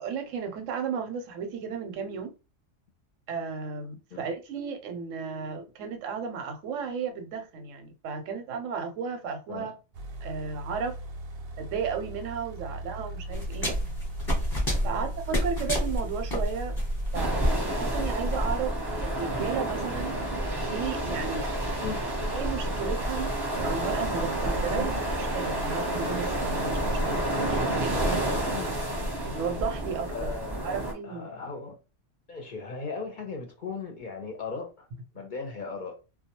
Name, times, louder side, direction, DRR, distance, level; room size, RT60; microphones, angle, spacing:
voice 1, 0.0-2.3 3.3-9.7 10.2-11.0 11.6-13.8 14.8-16.8 17.1-18.7 19.0-20.2 20.7-21.5 22.3-24.9 25.2-27.2 27.8-28.4 29.2-30.3 30.6-31.3, right 6 dB, 90° right, 1.0 m, -34 dB
sound 1, 9.9-17.5, right 1 dB, 65° right, 0.6 m, -39 dB
sound 2, 13.3-18.5, equal, 20° left, 0.8 m, -29 dB
sound 3, 17.1-30.9, right 1 dB, 25° right, 0.6 m, -29 dB
voice 2, 30.1-31.8 32.3-34.9 35.1-36.0, left 5 dB, 50° left, 0.6 m, -37 dB
2.2 x 2.2 x 2.8 m
omnidirectional pair, 1.3 m